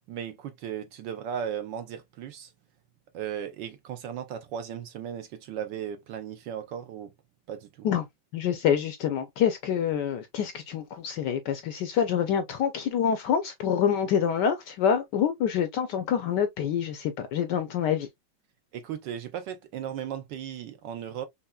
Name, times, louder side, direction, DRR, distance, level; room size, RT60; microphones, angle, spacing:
voice 1, 0.1-2.5 3.1-7.1 7.5-7.9 18.7-21.2, right 9 dB, 70° right, 1.1 m, -36 dB
voice 2, 8.3-18.1, left 8 dB, 70° left, 1.0 m, -26 dB
5.5 x 2.8 x 2.3 m
omnidirectional pair, 2.3 m